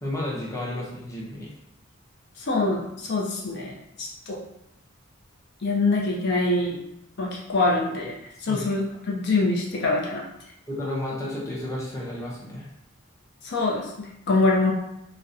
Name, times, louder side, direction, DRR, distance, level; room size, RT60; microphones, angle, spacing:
voice 1, 0.0-1.5 8.5-8.7 10.7-12.7, left 1 dB, 15° left, -5 dB, 0.6 m, -32 dB
voice 2, 2.5-3.7 4.0-4.4 5.6-6.8 7.2-8.1 8.4-10.2 13.4-13.9 14.3-14.7, left 2 dB, 55° left, -2 dB, 0.5 m, -24 dB
3.9 x 2.1 x 2.6 m, 0.82 s
head